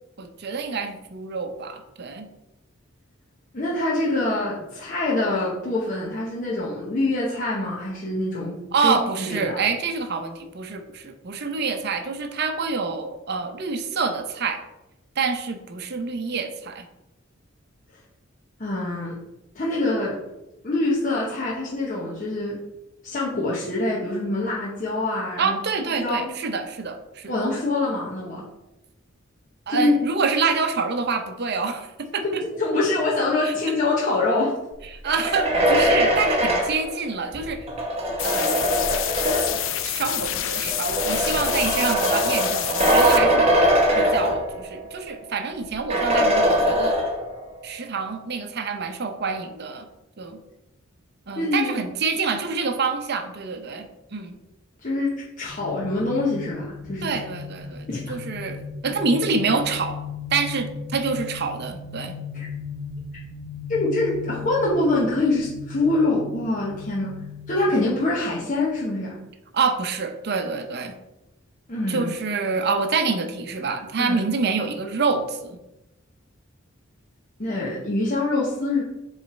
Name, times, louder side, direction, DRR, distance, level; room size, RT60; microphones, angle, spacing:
voice 1, 0.2-2.3 8.7-14.6 15.2-16.9 25.4-27.3 29.7-32.4 33.4-33.5 35.0-37.7 38.2-38.6 39.5-43.4 43.9-47.0 47.6-49.8 50.2-50.4 51.3-54.4 57.0-60.0 60.3-62.1 69.5-70.9 71.9-75.6, right 4 dB, 55° right, 6 dB, 0.7 m, -27 dB
voice 2, 3.5-9.6 18.6-19.2 19.5-20.2 20.6-22.6 23.0-25.6 26.0-26.3 27.3-28.4 29.7-30.0 32.2-34.6 51.4-51.7 54.8-57.1 57.9-58.1 62.3-62.5 63.7-67.1 67.5-69.2 71.7-72.1 74.0-74.2 77.4-78.8, left 2 dB, 40° left, -6 dB, 1.0 m, -25 dB
sound 1, 35.0-39.7 40.7-44.8 45.2-45.3 45.9-47.4, equal, 30° right, 1.0 m, -21 dB
sound 2, 38.2-43.2, left 11 dB, 80° left, 0.5 m, -28 dB
sound 3, 55.4-68.5, left 5 dB, 5° left, 1.2 m, -37 dB
7.0 x 3.3 x 4.3 m, 0.97 s
head